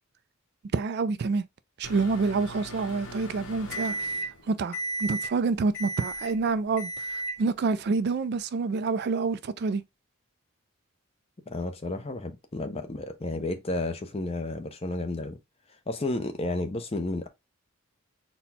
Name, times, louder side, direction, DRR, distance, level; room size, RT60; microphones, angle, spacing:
voice 1, 0.7-1.4 1.8-9.8, right 4 dB, 50° right, 0.3 m, -28 dB
Microwave oven, 1.8-4.4 4.7-5.3 5.7-6.3 6.8-7.4, right 1 dB, 60° left, 1.5 m, -35 dB
voice 2, 11.5-15.4 15.9-17.3, left 2 dB, 25° left, 0.6 m, -32 dB
4.2 x 2.2 x 4.1 m
head